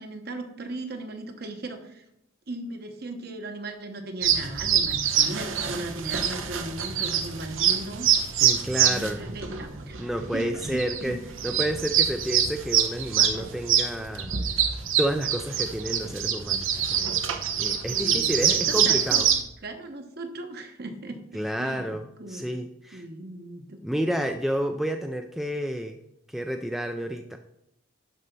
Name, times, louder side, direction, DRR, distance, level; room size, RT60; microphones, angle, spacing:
voice 1, 0.0-2.0 2.5-8.1 8.8-10.0 10.3-11.2 17.9-19.2 19.6-22.5 22.9-23.8, right 2 dB, 50° right, 5 dB, 1.1 m, -37 dB
sound 1, 4.2-19.4, right 8 dB, 80° right, 1.0 m, -25 dB
voice 2, 8.4-9.4 10.0-14.3 15.0-17.2 17.6-19.3 21.3-23.0 23.8-26.0 26.3-27.4, equal, ahead, 5 dB, 0.3 m, -30 dB
11.5 x 4.1 x 5.5 m, 0.79 s
head